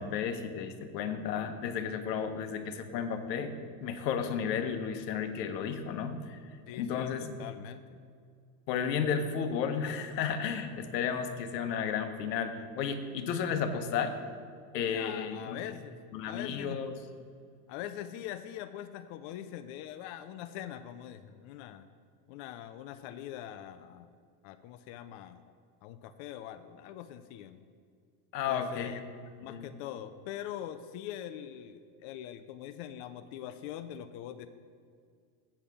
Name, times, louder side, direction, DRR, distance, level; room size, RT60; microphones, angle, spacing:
voice 1, 0.0-3.5 3.8-6.4 6.7-7.3 8.7-14.1 14.7-15.6 16.1-16.9 28.3-29.0 29.5-29.7, left 7 dB, 90° left, 8 dB, 1.1 m, -33 dB
voice 2, 6.7-8.0 14.9-16.0 16.2-16.8 17.7-21.9 22.3-24.1 24.4-25.5 25.8-27.6 28.5-29.0 29.4-34.5, left 11 dB, 55° left, 10 dB, 0.6 m, -43 dB
8.6 x 5.8 x 6.9 m, 2.2 s
supercardioid pair, 125°, 48 cm